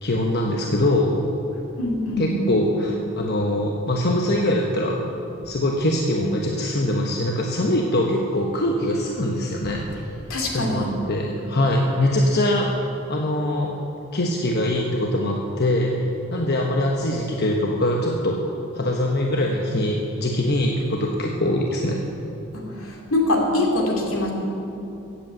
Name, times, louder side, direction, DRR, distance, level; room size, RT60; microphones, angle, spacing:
voice 1, 0.0-1.2 2.2-5.0 5.4-9.8 10.5-12.7 13.1-13.7 14.1-18.4 18.7-22.0, left 1 dB, 50° left, 0 dB, 1.1 m, -23 dB
voice 2, 1.8-2.3 10.3-10.9 22.5-22.6 23.1-24.3, left 2 dB, 75° left, 0 dB, 2.7 m, -23 dB
15.5 x 8.5 x 7.7 m, 2.8 s
head